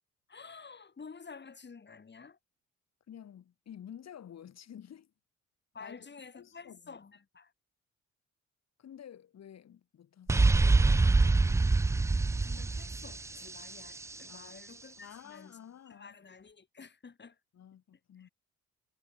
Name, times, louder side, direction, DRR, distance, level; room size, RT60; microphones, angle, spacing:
voice 1, 0.3-2.4 5.7-7.5 12.3-15.6 15.9-17.4 18.2-18.3, left 5 dB, 35° left, 5.5 m, -51 dB
voice 2, 3.1-5.1 5.8-6.1 6.3-7.0 8.8-11.2 14.3-14.6 15.0-16.2 17.5-18.3, left 9 dB, 60° left, 5.6 m, -51 dB
sound 1, 10.3-14.0, right 3 dB, 10° right, 0.3 m, -25 dB
supercardioid pair, 65°, 30 cm